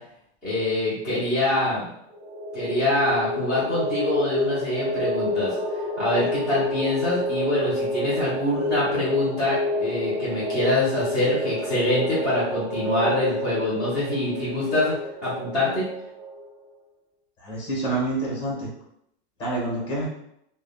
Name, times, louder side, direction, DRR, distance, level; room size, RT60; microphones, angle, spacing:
voice 1, 0.4-1.9 2.5-5.6 6.0-14.9 15.2-15.8, left 1 dB, 5° right, -15 dB, 0.4 m, -25 dB
sound 1, 2.1-16.5, left 1 dB, 70° right, 0.7 m, -29 dB
voice 2, 17.4-18.7 19.4-20.1, right 2 dB, 15° left, -4 dB, 0.9 m, -27 dB
3.4 x 2.0 x 2.2 m, 0.74 s
supercardioid pair, 170°, 34 cm